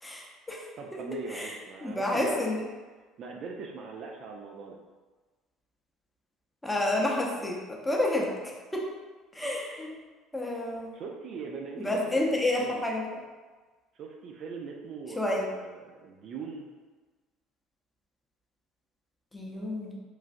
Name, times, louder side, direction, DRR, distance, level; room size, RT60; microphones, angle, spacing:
voice 1, 0.0-2.6 6.6-8.9 9.3-10.0 10.3-11.0 11.8-13.2 15.2-15.5 19.3-20.0, left 1 dB, 10° left, -2 dB, 0.6 m, -30 dB
voice 2, 0.8-2.7 3.2-4.8 10.9-12.9 13.9-16.7, right 5 dB, 55° right, 1 dB, 0.4 m, -41 dB
3.1 x 2.4 x 2.5 m, 1.3 s
hypercardioid pair, 65°, 0 cm